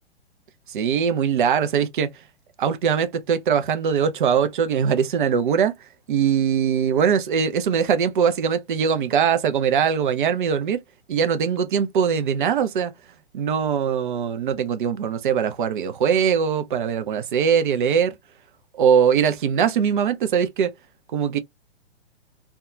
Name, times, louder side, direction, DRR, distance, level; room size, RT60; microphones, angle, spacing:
voice 1, 0.7-2.1 2.6-5.7 6.1-10.8 11.1-12.9 13.3-18.1 18.7-20.7 21.1-21.4, right 7 dB, 45° right, 0.5 m, -21 dB
2.6 x 2.3 x 2.3 m
figure-of-eight pair, 115°, 34 cm